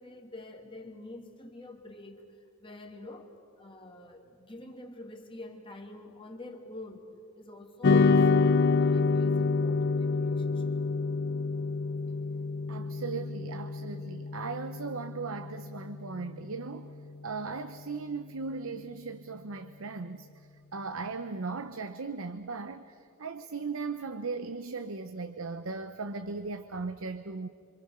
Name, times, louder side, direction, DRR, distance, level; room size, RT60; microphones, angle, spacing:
voice 1, 0.0-10.7, left 2 dB, 25° left, 2 dB, 2.3 m, -47 dB
sound 1, 7.8-16.4, left 4 dB, 50° left, 0.5 m, -27 dB
voice 2, 12.7-16.9 17.2-27.5, right 4 dB, 70° right, 10 dB, 0.9 m, -38 dB
27.0 x 26.0 x 6.8 m, 2.6 s
head